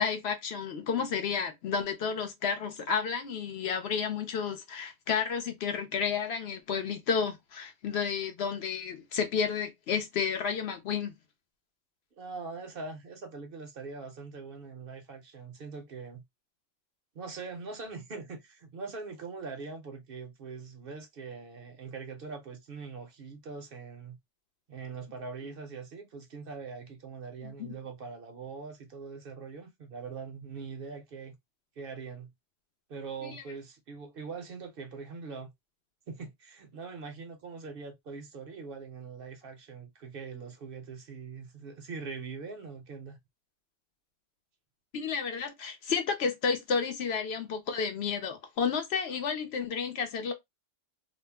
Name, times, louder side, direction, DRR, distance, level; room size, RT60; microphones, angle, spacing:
voice 1, 0.0-11.1 27.4-27.7 33.2-33.4 44.9-50.3, left 6 dB, 65° left, 0.8 m, -31 dB
voice 2, 12.2-16.2 17.1-24.2 24.7-31.4 31.8-32.3 32.9-35.5 36.1-43.2, right 4 dB, 60° right, 0.7 m, -42 dB
2.4 x 2.0 x 3.2 m
omnidirectional pair, 1.2 m